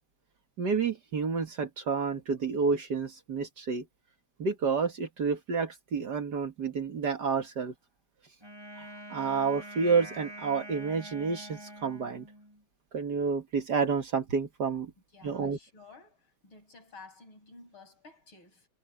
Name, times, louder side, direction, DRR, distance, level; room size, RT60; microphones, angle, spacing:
voice 1, 0.6-3.8 4.4-7.7 8.8-12.3 12.9-14.9 15.2-15.6, right 5 dB, 50° right, 2.1 m, -30 dB
Wind instrument woodwind instrument, 8.4-12.6, right 1 dB, 10° right, 5.8 m, -45 dB
voice 2, 15.1-18.7, left 3 dB, 65° left, 8.1 m, -53 dB
omnidirectional pair, 2.4 m